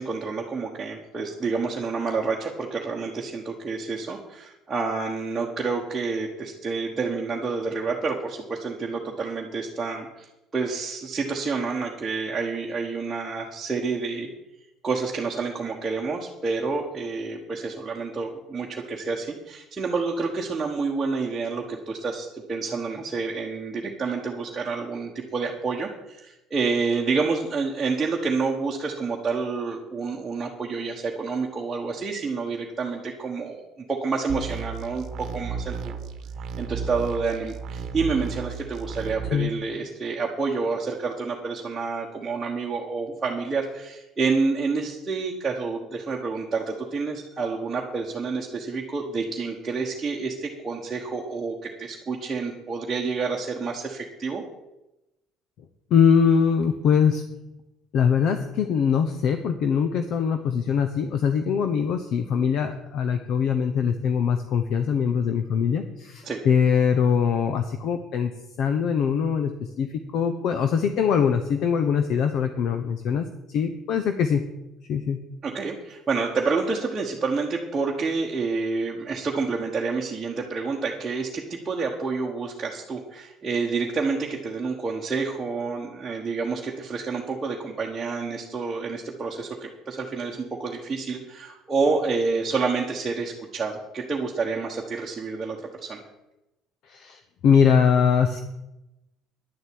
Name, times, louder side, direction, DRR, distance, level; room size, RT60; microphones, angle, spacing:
voice 1, 0.0-14.3 14.8-36.1 36.6-54.4 66.2-66.4 75.4-96.0, right 4 dB, 15° right, -3 dB, 1.3 m, -28 dB
sound 1, 34.3-39.3, right 6 dB, 45° right, 1.2 m, -34 dB
voice 2, 55.9-57.3 57.9-68.3 68.6-74.4 74.9-75.2 96.8-98.4, left 7 dB, 50° left, 7 dB, 0.9 m, -22 dB
10.5 x 7.9 x 8.7 m, 0.95 s
cardioid pair, 170°, 0 cm